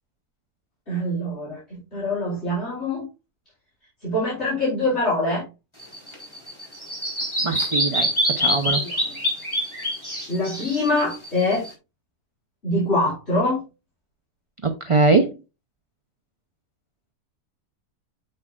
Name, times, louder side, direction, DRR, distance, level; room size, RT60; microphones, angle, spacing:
voice 1, 0.9-3.0 4.0-5.4 8.6-9.0 10.3-11.7 12.6-13.6, left 1 dB, 40° left, -8 dB, 4.5 m, -24 dB
Bird vocalization bird call bird song, 5.8-11.7, equal, 15° left, 4.3 m, -25 dB
voice 2, 7.4-8.8 14.6-15.3, right 3 dB, 35° right, 4 dB, 0.5 m, -21 dB
9.8 x 7.8 x 2.4 m, 0.28 s
omnidirectional pair, 1.7 m